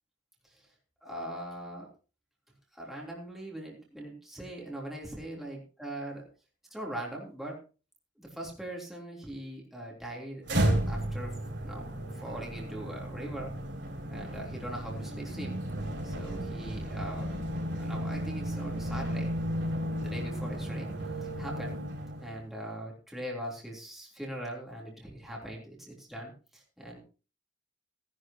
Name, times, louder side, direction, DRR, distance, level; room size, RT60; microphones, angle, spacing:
voice 1, 1.0-1.9 2.7-6.3 6.7-7.6 8.2-10.4 10.9-11.3 11.6-11.9 12.2-13.5 14.1-15.6 16.0-17.3 17.8-19.3 19.8-20.9 21.4-21.8 22.2-27.0, right 1 dB, ahead, -3 dB, 3.5 m, -41 dB
sound 1, 10.4-22.4, right 1 dB, 65° right, 4.8 m, -33 dB
18.0 x 11.5 x 3.0 m, 0.34 s
head